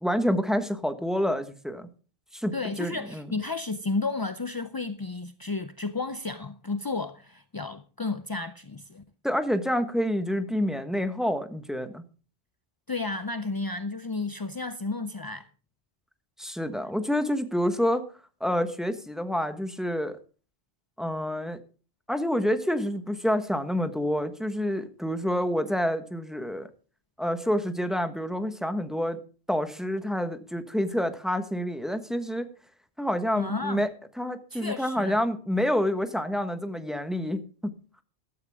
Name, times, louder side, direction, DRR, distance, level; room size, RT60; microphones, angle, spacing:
voice 1, 0.0-1.9 2.3-3.3 9.2-12.0 16.4-18.1 18.4-20.2 21.0-21.6 22.1-26.7 27.2-29.2 29.5-32.5 33.0-37.7, equal, ahead, 1.2 m, -28 dB
voice 2, 2.5-9.0 12.9-15.5 33.4-33.8 34.5-35.2, left 3 dB, 35° left, 0.4 m, -32 dB
14.5 x 13.0 x 3.6 m
omnidirectional pair, 1.2 m